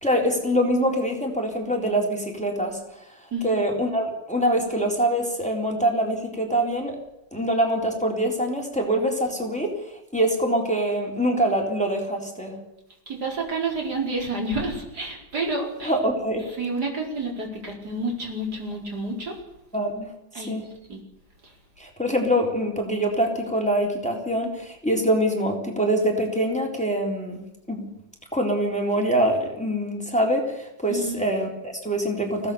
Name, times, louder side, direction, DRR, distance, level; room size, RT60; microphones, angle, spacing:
voice 1, 0.0-2.8 3.2-7.0 7.3-9.8 10.1-12.6 15.8-16.4 19.7-20.1 20.4-20.6 21.8-27.4 27.7-27.9 28.3-32.5, right 1 dB, 5° left, 1 dB, 3.7 m, -24 dB
voice 2, 13.1-15.9 16.5-19.4 20.3-20.6 20.9-21.0 21.4-21.5 30.9-31.2, right 2 dB, 50° right, 0 dB, 5.2 m, -29 dB
24.5 x 17.0 x 6.9 m, 0.86 s
omnidirectional pair, 2.1 m